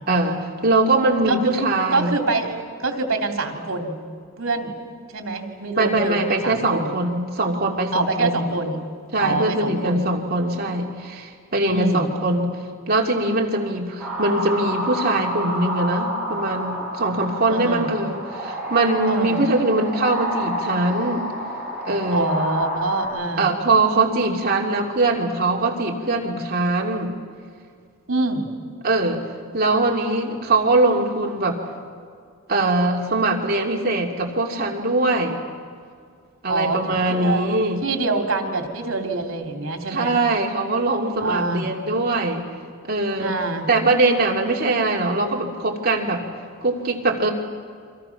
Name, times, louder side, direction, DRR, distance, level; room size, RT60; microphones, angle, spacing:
voice 1, 0.1-2.2 5.8-8.4 9.1-12.6 12.9-21.3 21.9-22.3 23.4-27.2 28.8-29.3 29.5-31.6 32.5-35.4 36.4-37.8 39.9-42.5 42.8-43.4 43.7-46.2 46.6-47.3, right 2 dB, 50° right, 0 dB, 2.8 m, -22 dB
voice 2, 1.2-4.0 4.4-4.7 5.1-7.0 7.9-8.8 9.2-10.1 11.6-12.1 17.5-17.9 19.0-19.4 22.1-23.5 28.1-28.5 36.5-40.1 41.2-41.7 43.2-43.7, right 3 dB, 75° right, 3 dB, 2.8 m, -25 dB
sound 1, 14.0-23.1, equal, 5° right, 6.4 m, -29 dB
29.5 x 24.5 x 5.9 m, 2.2 s
head